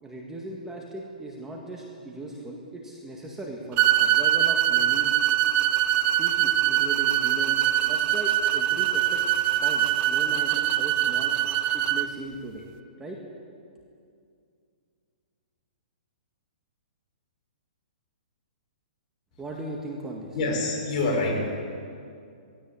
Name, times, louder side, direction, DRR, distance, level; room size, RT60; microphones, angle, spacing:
voice 1, 0.0-5.1 6.2-9.2 9.6-11.4 11.7-12.7 13.0-13.2 19.4-20.4, right 2 dB, 10° right, -1 dB, 1.9 m, -38 dB
sound 1, 3.8-12.1, right 12 dB, 25° right, 0.7 m, -23 dB
voice 2, 20.3-21.6, left 2 dB, 40° left, -2 dB, 6.6 m, -26 dB
18.5 x 16.5 x 8.7 m, 2.4 s
hypercardioid pair, 155°, 5 cm